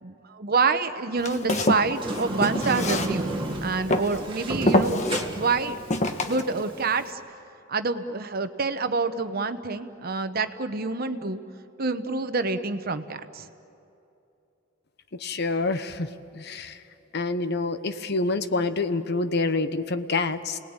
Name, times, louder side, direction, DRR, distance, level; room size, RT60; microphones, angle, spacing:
voice 1, 0.0-3.3 3.6-5.0 5.3-5.8 6.3-7.2 7.7-11.4 11.8-13.5, right 4 dB, 50° right, 10 dB, 1.1 m, -27 dB
Walk footsteps, 1.2-3.5 3.9-4.2 4.7-5.2 5.9-6.4, left 1 dB, 35° left, 1.4 m, -25 dB
Sliding door, 1.9-7.1, right 1 dB, 25° right, 2.1 m, -33 dB
voice 2, 15.2-16.8 17.1-20.6, left 3 dB, 55° left, 11 dB, 1.0 m, -27 dB
29.5 x 19.5 x 8.9 m, 2.7 s
head